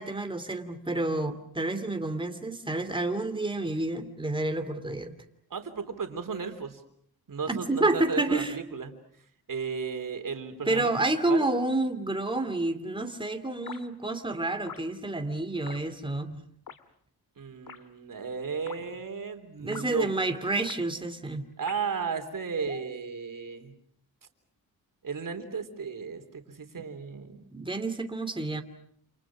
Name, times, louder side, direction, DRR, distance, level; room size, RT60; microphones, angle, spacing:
voice 1, 0.0-5.1 7.5-8.6 10.7-16.4 19.6-21.4 27.5-28.6, right 2 dB, 15° right, 7 dB, 2.8 m, -29 dB
voice 2, 5.5-6.8 7.3-8.9 9.5-10.9 11.3-11.5 17.4-20.1 21.6-23.8 25.0-27.4, right 5 dB, 55° right, 7 dB, 3.7 m, -34 dB
sound 1, 13.7-13.8 14.7-14.9 15.7-15.8 16.7-16.8 17.7-17.8 18.7-18.8 19.7-19.9 20.7-20.8 21.7-22.0 22.7-22.9, left 7 dB, 55° left, 1.8 m, -43 dB
28.5 x 28.5 x 6.2 m, 0.65 s
cardioid pair, 95°, 39 cm